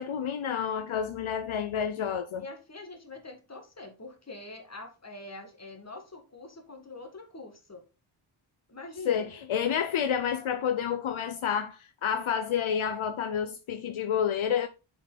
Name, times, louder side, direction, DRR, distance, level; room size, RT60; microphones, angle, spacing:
voice 1, 0.0-2.4 9.1-14.7, left 8 dB, 70° left, 0.7 m, -29 dB
voice 2, 2.4-7.8 8.7-9.3, left 2 dB, 30° left, 1.9 m, -44 dB
7.1 x 4.6 x 3.9 m
wide cardioid pair, 65°, 50 cm